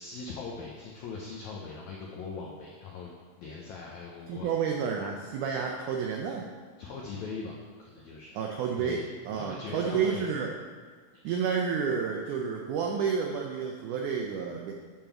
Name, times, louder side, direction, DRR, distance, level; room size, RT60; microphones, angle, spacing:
voice 1, 0.0-3.1 3.4-4.5 6.8-7.5 7.8-8.4 8.8-9.1 9.3-10.2, left 4 dB, 85° left, -3 dB, 1.6 m, -40 dB
voice 2, 4.3-6.5 8.4-10.5 11.2-14.7, right 6 dB, 90° right, 1 dB, 1.7 m, -30 dB
8.7 x 3.7 x 5.8 m, 1.5 s
omnidirectional pair, 4.3 m